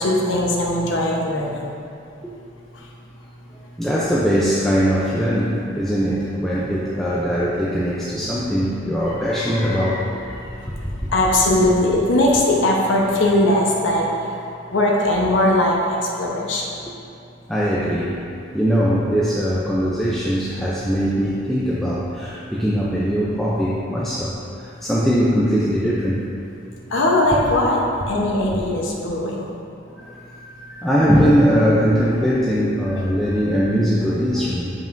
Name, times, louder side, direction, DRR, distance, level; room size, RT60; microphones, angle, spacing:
voice 1, 0.0-1.7 2.7-2.9 10.8-14.4 14.7-16.8 26.9-29.6 33.0-33.1, left 1 dB, 70° left, -2 dB, 0.8 m, -20 dB
voice 2, 3.5-11.1 17.5-18.2 18.5-26.3 30.0-34.7, equal, ahead, -8 dB, 0.4 m, -21 dB
7.2 x 5.3 x 2.5 m, 2.6 s
head